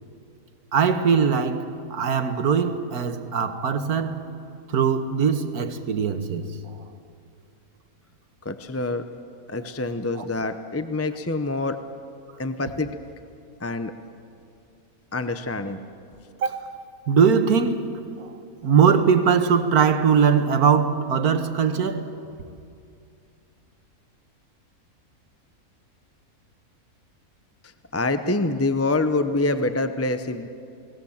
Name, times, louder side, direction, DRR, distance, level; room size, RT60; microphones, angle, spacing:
voice 1, 0.7-4.2 4.7-6.7 10.2-10.3 16.4-16.7 17.1-22.1, right 6 dB, 85° right, 1.7 m, -21 dB
voice 2, 8.4-9.0 9.5-11.8 12.4-12.9 13.6-13.9 15.1-15.8 27.9-30.5, left 2 dB, 15° left, 0.5 m, -26 dB
29.5 x 19.5 x 7.3 m
omnidirectional pair, 1.6 m